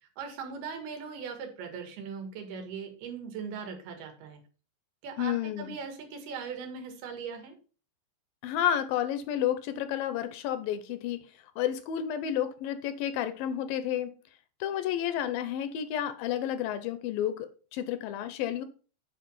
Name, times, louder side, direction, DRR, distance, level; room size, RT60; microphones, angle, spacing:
voice 1, 0.2-4.4 5.0-7.6, right 6 dB, 90° right, 3.6 m, -39 dB
voice 2, 5.2-5.8 8.4-11.2 11.6-14.1 14.6-18.6, left 10 dB, 80° left, 2.3 m, -31 dB
8.6 x 4.8 x 5.4 m
omnidirectional pair, 4.3 m